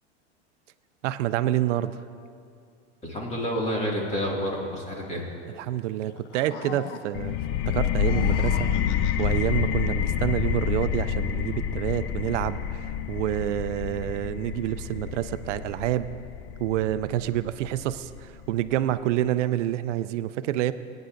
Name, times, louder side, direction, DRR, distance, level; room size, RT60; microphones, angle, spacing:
voice 1, 1.0-2.0 5.6-7.4 7.7-16.1 16.6-20.7, right 13 dB, 90° right, 13 dB, 0.5 m, -28 dB
voice 2, 3.0-5.2, equal, 20° left, -2 dB, 2.2 m, -29 dB
sound 1, 6.0-7.4 7.9-9.5, left 9 dB, 80° left, 0.8 m, -42 dB
sound 2, 7.1-18.5, left 9 dB, 35° left, 0.5 m, -28 dB
20.0 x 10.0 x 2.6 m, 2.4 s
supercardioid pair, 135°, 35 cm